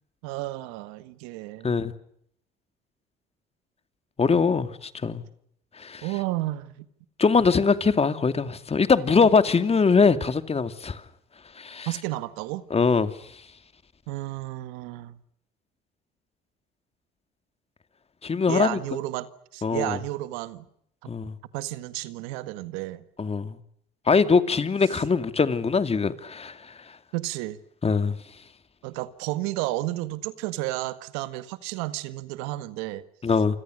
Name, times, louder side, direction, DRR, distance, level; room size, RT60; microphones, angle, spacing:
voice 1, 0.2-1.8 6.0-6.9 9.2-9.3 11.9-12.6 14.1-15.2 18.5-20.7 21.5-23.0 27.1-27.6 28.8-33.0, right 17 dB, 85° right, 1.7 m, -32 dB
voice 2, 4.2-5.2 5.8-6.1 7.2-11.0 11.6-11.9 12.7-13.1 18.2-18.8 19.6-20.0 21.1-21.3 23.2-23.6 24.1-26.7 27.8-28.1 33.2-33.6, left 5 dB, 30° left, 2.6 m, -22 dB
28.5 x 26.0 x 6.5 m
supercardioid pair, 75°, 20 cm